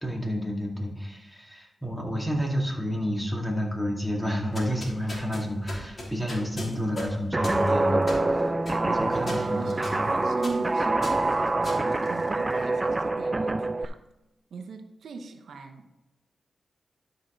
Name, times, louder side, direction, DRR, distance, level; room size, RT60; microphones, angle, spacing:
voice 1, 0.0-8.5 9.0-10.1 11.6-11.7, equal, 5° left, 0 dB, 2.3 m, -30 dB
sound 1, 4.4-12.7, left 1 dB, 45° left, 2.9 m, -40 dB
Guitar, 7.3-13.9, right 2 dB, 25° right, 0.4 m, -25 dB
voice 2, 8.8-14.0 14.5-15.9, right 4 dB, 85° right, 6 dB, 0.8 m, -40 dB
12.0 x 5.1 x 3.9 m, 0.97 s
cardioid pair, 60°, 0 cm